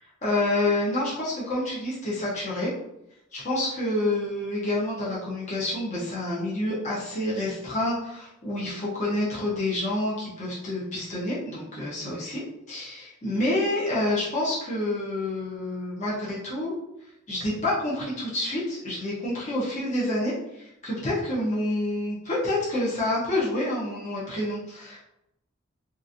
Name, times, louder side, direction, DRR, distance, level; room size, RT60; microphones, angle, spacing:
voice 1, 0.2-2.7 3.3-16.7 17.3-25.0, left 1 dB, 35° left, -7 dB, 0.9 m, -28 dB
2.9 x 2.5 x 2.5 m, 0.85 s
head